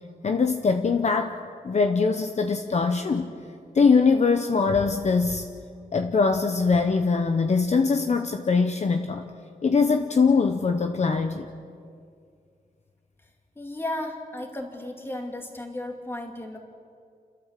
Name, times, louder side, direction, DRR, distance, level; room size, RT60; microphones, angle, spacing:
voice 1, 0.2-1.4 1.6-3.3 3.7-5.5 5.9-9.2 9.6-11.5, left 4 dB, 45° left, 5 dB, 0.9 m, -22 dB
voice 2, 13.6-16.6, left 1 dB, 15° left, 2 dB, 2.3 m, -34 dB
29.5 x 13.5 x 7.5 m, 2.3 s
wide cardioid pair, 175°, 16 cm